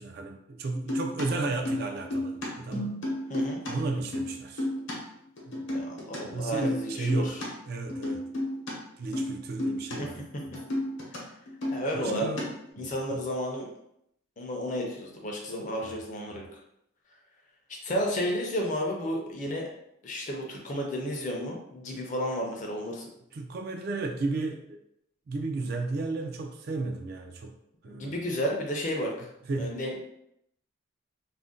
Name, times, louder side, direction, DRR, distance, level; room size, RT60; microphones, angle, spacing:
voice 1, 0.0-2.9 3.7-4.7 5.5-5.8 6.3-8.2 9.0-10.2 10.5-10.6 11.9-12.5 12.8-13.2 15.8-15.9 16.3-16.4 23.3-24.8 25.3-27.5 27.8-28.2 29.5-29.8, right 3 dB, 50° right, 4 dB, 0.3 m, -33 dB
sound 1, 0.7-3.7 4.0-5.0 5.4-6.2 6.5-7.5 7.9-8.7 9.1-9.3 9.6-10.0 10.2-11.2 11.5-12.7, left 1 dB, 60° left, 0.8 m, -32 dB
voice 2, 5.7-7.4 10.0-10.1 11.7-12.3 12.8-13.7 14.4-16.4 17.8-19.6 20.0-23.1 27.9-29.3 29.6-30.0, equal, 35° left, 0 dB, 0.5 m, -32 dB
2.5 x 2.1 x 3.6 m, 0.79 s
head